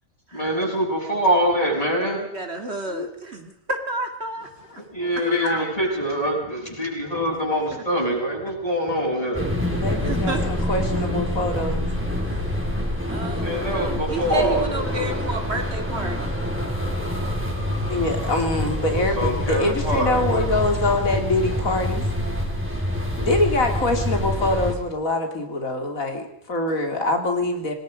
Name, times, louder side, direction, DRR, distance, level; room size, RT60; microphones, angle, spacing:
voice 1, 0.3-2.2 4.9-9.6 13.3-15.1 18.8-20.6, equal, 25° left, -2 dB, 7.7 m, -24 dB
voice 2, 2.0-4.5 7.7-7.8 9.9-10.6 12.2-12.5 13.1-16.3, right 2 dB, 50° right, 5 dB, 2.6 m, -31 dB
voice 3, 5.0-5.7 9.7-11.9 17.9-22.0 23.2-26.2 26.5-27.7, left 2 dB, 85° left, 4 dB, 3.2 m, -24 dB
sound 1, 9.3-24.7, left 1 dB, 10° right, 4.5 m, -26 dB
27.0 x 19.5 x 5.2 m, 0.78 s
omnidirectional pair, 1.4 m